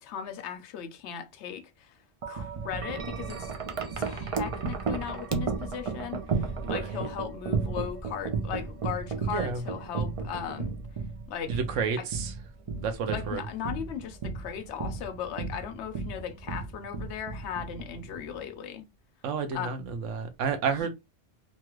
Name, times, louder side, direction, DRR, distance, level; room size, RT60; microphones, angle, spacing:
voice 1, 0.0-1.9 2.3-3.5 3.9-10.7 11.3-11.6 12.7-18.9 19.5-19.7 20.8-20.9, left 8 dB, 70° left, 0.9 m, -37 dB
Wind chime, 2.2-18.4, right 5 dB, 60° right, 0.3 m, -34 dB
voice 2, 6.6-7.1 9.2-9.6 11.5-12.3 12.8-13.4 19.2-20.9, right 6 dB, 90° right, 1.0 m, -31 dB
2.8 x 2.3 x 2.9 m
omnidirectional pair, 1.2 m